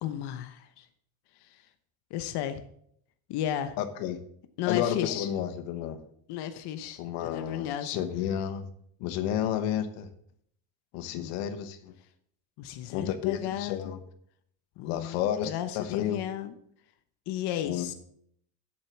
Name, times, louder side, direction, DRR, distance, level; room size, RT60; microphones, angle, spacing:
voice 1, 0.0-0.9 1.4-1.6 2.1-2.6 3.3-3.8 4.6-5.3 6.3-8.0 11.1-11.3 12.6-13.9 14.8-16.5 17.3-17.9, left 11 dB, 60° left, 10 dB, 1.0 m, -34 dB
voice 2, 3.8-4.2 4.7-6.0 7.0-8.7 9.0-10.1 10.9-11.9 12.9-14.0 14.8-16.2 17.6-17.9, left 10 dB, 85° left, 10 dB, 1.3 m, -31 dB
8.0 x 7.4 x 7.2 m, 0.68 s
cardioid pair, 135°, 45 cm